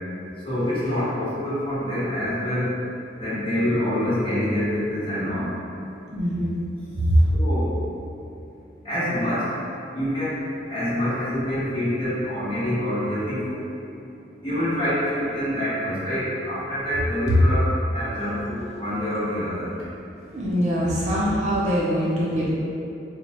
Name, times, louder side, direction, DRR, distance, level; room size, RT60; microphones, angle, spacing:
voice 1, 0.4-2.7 3.2-5.5 7.3-7.8 8.8-9.4 9.9-10.4 10.7-13.6 14.4-19.7 21.1-21.2, left 1 dB, 30° left, -11 dB, 1.1 m, -26 dB
voice 2, 6.1-6.5 7.1-7.2 20.3-22.5, equal, 40° right, -7 dB, 0.5 m, -23 dB
4.3 x 2.1 x 2.9 m, 2.7 s
head